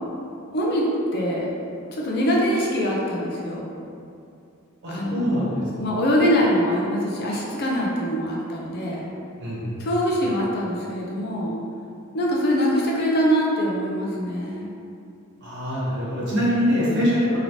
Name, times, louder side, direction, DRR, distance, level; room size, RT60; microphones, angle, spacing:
voice 1, 0.5-1.5 1.9-3.7 4.9-9.1 9.8-11.5 12.1-14.7, equal, 45° left, -3 dB, 0.5 m, -23 dB
voice 2, 4.8-5.6 9.4-9.7 15.4-17.4, equal, 55° right, -9 dB, 1.1 m, -23 dB
3.0 x 2.9 x 2.7 m, 2.5 s
head